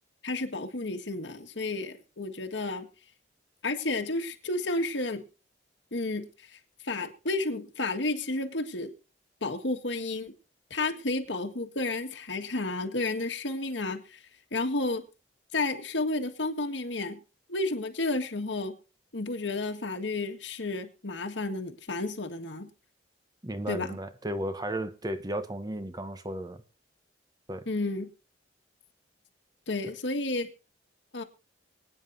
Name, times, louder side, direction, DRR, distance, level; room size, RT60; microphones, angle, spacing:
voice 1, 0.2-2.9 3.6-5.2 5.9-8.9 9.4-10.3 10.7-14.2 14.5-15.1 15.5-17.2 17.5-18.8 19.1-22.7 23.7-24.0 27.7-28.1 29.7-30.5 31.1-31.2, left 2 dB, 85° left, 1.8 m, -31 dB
voice 2, 23.4-26.6 27.5-27.7, right 1 dB, 20° right, 0.9 m, -34 dB
24.0 x 9.5 x 2.7 m
head